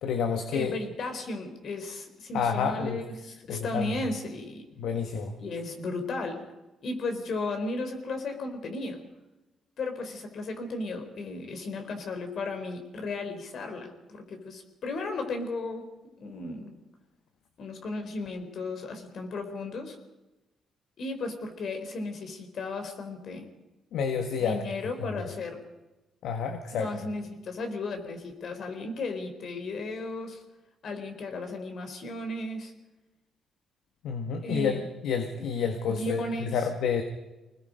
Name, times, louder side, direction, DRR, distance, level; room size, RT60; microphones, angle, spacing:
voice 1, 0.0-0.8 2.3-3.0 3.5-4.0 4.8-5.3 23.9-24.6 25.0-25.2 26.2-26.9 34.0-37.0, left 6 dB, 80° left, 6 dB, 1.7 m, -29 dB
voice 2, 0.5-4.7 5.4-6.4 6.8-9.0 9.8-15.9 16.2-16.7 17.6-20.0 21.0-23.5 24.4-25.6 26.7-30.4 30.8-32.7 34.4-34.9 35.9-36.6, left 2 dB, 60° left, 5 dB, 4.1 m, -35 dB
26.0 x 20.0 x 5.2 m, 1.0 s
cardioid pair, 90°, 0 cm